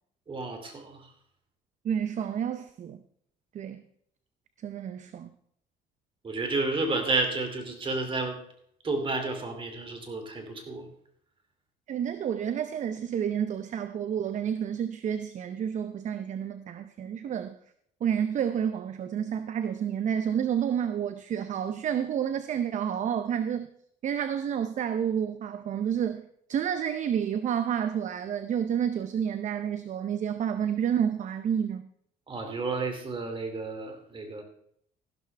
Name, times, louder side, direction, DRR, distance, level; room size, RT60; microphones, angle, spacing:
voice 1, 0.3-1.1 6.2-8.4 8.8-10.9 32.3-34.4, right 3 dB, 30° right, 5 dB, 2.5 m, -31 dB
voice 2, 1.8-3.0 3.5-3.8 4.6-5.3 11.9-17.6 18.0-23.7 24.0-31.9, right 8 dB, 45° right, 11 dB, 0.6 m, -30 dB
15.0 x 12.0 x 3.3 m, 0.69 s
cardioid pair, 110°, 17 cm